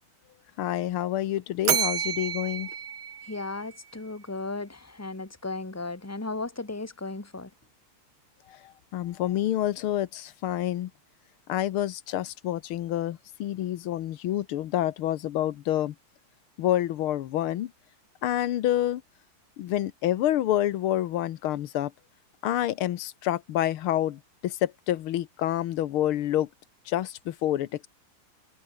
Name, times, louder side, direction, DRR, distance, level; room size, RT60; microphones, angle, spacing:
voice 1, 0.6-2.7 8.5-8.6 8.9-10.9 11.5-15.9 16.6-17.7 18.2-19.0 19.6-21.9 22.4-26.5 26.9-27.9, left 12 dB, 85° left, 1.8 m, -28 dB
Bell, 1.6-3.9, right 8 dB, 55° right, 1.8 m, -30 dB
voice 2, 3.2-7.5, left 3 dB, 5° left, 1.9 m, -35 dB
omnidirectional pair, 2.3 m